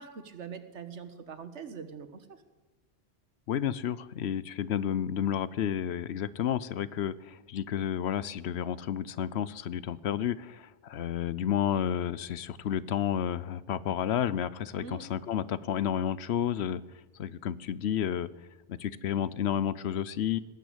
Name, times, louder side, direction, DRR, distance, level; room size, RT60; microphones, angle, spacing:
voice 1, 0.0-2.3 14.8-15.0, right 6 dB, 85° right, 10 dB, 1.6 m, -43 dB
voice 2, 3.5-16.8 17.2-18.3 18.7-20.4, left 9 dB, 70° left, 18 dB, 0.9 m, -31 dB
18.5 x 9.3 x 8.1 m, 1.2 s
omnidirectional pair, 1.2 m